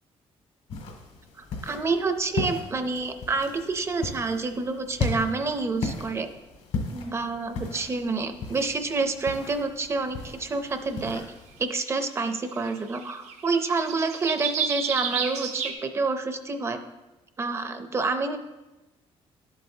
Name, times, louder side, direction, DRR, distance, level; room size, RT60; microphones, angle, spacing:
sound 1, 0.7-11.6, left 4 dB, 75° left, 1.8 m, -36 dB
voice 1, 1.4-6.3 6.9-11.3 11.6-16.8 17.4-18.4, right 3 dB, 25° right, 8 dB, 0.5 m, -28 dB
sound 2, 11.0-11.1 12.2-12.3 12.5-15.7, right 7 dB, 85° right, 1.0 m, -30 dB
12.0 x 7.8 x 2.7 m, 1.1 s
cardioid pair, 165°, 11 cm